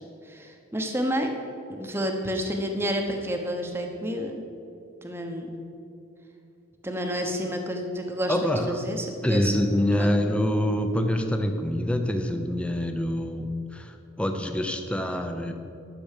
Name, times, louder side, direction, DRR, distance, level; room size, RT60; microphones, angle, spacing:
voice 1, 0.2-1.3 1.7-4.4 5.0-5.5 6.8-9.5 9.9-10.1, equal, 10° right, 3 dB, 0.9 m, -30 dB
voice 2, 8.3-8.8 9.2-15.5, left 1 dB, 5° left, 5 dB, 0.6 m, -26 dB
12.0 x 6.8 x 6.6 m, 2.7 s
head